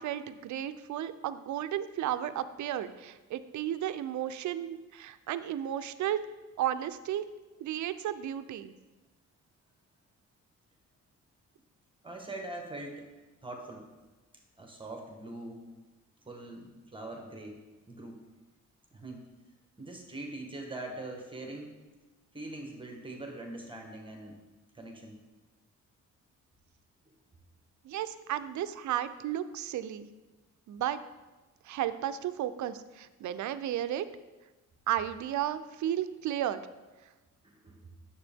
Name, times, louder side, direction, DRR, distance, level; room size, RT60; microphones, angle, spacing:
voice 1, 0.0-6.2 6.6-7.2 7.6-8.7 27.8-30.1 30.7-31.0 31.6-34.0 34.9-36.6, right 11 dB, 70° right, 12 dB, 0.5 m, -33 dB
voice 2, 12.0-13.1 13.4-13.9 14.6-15.6 16.3-17.6 17.9-18.2 18.9-19.2 19.8-21.8 22.3-24.4 24.7-25.2 37.4-37.9, right 2 dB, 15° right, 1 dB, 1.2 m, -42 dB
9.6 x 7.3 x 3.5 m, 1.2 s
cardioid pair, 130°, 30 cm